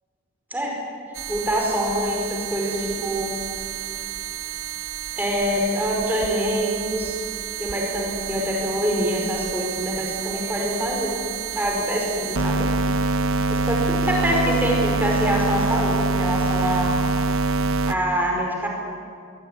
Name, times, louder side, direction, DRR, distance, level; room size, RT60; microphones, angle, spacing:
sound 1, 1.2-17.9, right 4 dB, 75° right, 0.9 m, -26 dB
voice 1, 1.3-3.3 5.1-7.2 7.6-11.2 11.5-12.7 13.5-16.9 17.9-18.7, equal, 10° right, -1 dB, 5.0 m, -25 dB
22.5 x 21.5 x 9.3 m, 2.3 s
head